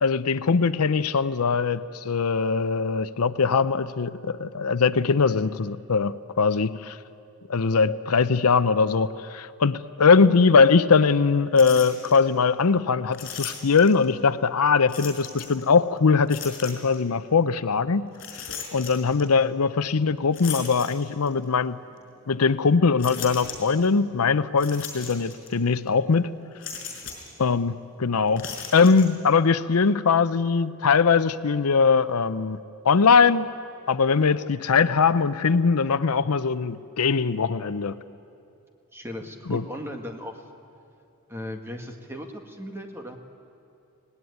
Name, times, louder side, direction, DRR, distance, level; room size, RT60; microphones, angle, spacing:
voice 1, 0.0-7.0 7.5-18.1 18.7-21.8 22.3-26.3 27.4-33.4 33.9-38.0 39.5-39.6, left 5 dB, 80° left, 14 dB, 0.6 m, -21 dB
sound 1, 11.6-12.2 13.1-14.1 14.9-15.6 16.3-17.0 18.1-19.2 20.3-21.4 22.0-22.1 23.0-23.9 24.6-25.5 25.8-25.9 26.6-27.3 28.3-29.1, left 6 dB, 55° left, 4.9 m, -37 dB
voice 2, 38.9-40.4 41.3-43.2, equal, 10° right, 4 dB, 1.7 m, -37 dB
25.5 x 18.5 x 9.6 m, 2.6 s
head